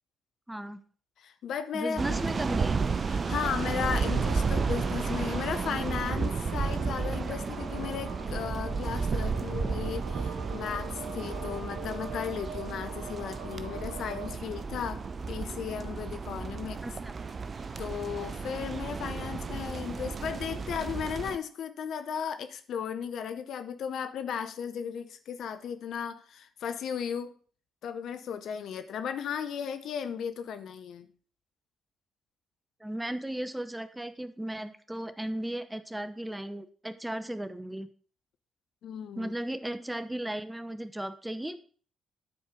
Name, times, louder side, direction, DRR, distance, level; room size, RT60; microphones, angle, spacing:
voice 1, 0.5-0.8 1.7-2.8 16.8-17.1 32.8-37.9 39.2-41.6, right 1 dB, 10° right, 11 dB, 0.8 m, -36 dB
voice 2, 1.2-2.0 3.1-16.8 17.8-27.3 27.8-31.1 38.8-39.3, left 7 dB, 65° left, 10 dB, 0.6 m, -35 dB
sound 1, 2.0-21.4, right 4 dB, 40° right, 0.6 m, -32 dB
sound 2, 3.4-14.3, right 4 dB, 85° right, 1.2 m, -44 dB
9.7 x 4.5 x 4.9 m, 0.42 s
hypercardioid pair, 50°, 0 cm